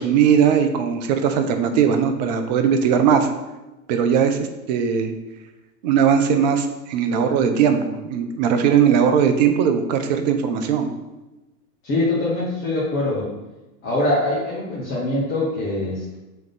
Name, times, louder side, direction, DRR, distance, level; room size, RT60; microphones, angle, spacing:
voice 1, 0.0-3.3 3.9-4.4 4.7-5.1 5.8-10.9, right 7 dB, 30° right, 7 dB, 0.4 m, -19 dB
voice 2, 11.8-13.3 13.8-16.2, left 2 dB, 25° left, -8 dB, 1.3 m, -23 dB
4.0 x 3.5 x 3.6 m, 1.0 s
figure-of-eight pair, 90°, 48 cm